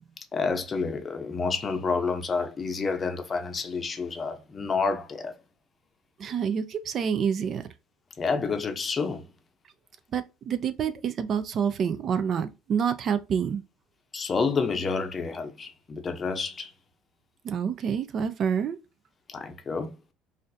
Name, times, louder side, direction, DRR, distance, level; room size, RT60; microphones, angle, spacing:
voice 1, 0.3-5.3 8.2-9.3 14.1-16.7 19.3-19.9, left 4 dB, 25° left, 0.6 m, -29 dB
voice 2, 6.2-7.6 10.1-13.6 17.4-18.8, right 7 dB, 45° right, 0.4 m, -27 dB
4.0 x 2.5 x 2.6 m
cardioid pair, 125°, 0 cm